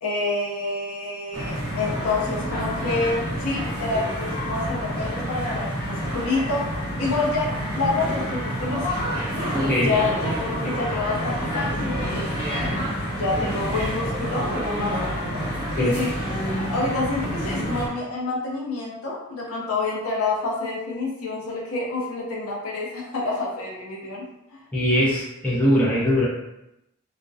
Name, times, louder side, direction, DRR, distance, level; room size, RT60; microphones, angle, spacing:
voice 1, 0.0-12.3 13.1-15.1 15.7-16.1 16.7-24.2 24.5-24.6, left 3 dB, 65° left, -3 dB, 0.6 m, -28 dB
sound 1, 1.3-17.9, equal, 20° right, 0.9 m, -28 dB
voice 2, 9.5-9.9 15.8-15.9 24.7-26.3, equal, 5° left, -9 dB, 0.6 m, -21 dB
2.4 x 2.1 x 2.5 m, 0.86 s
head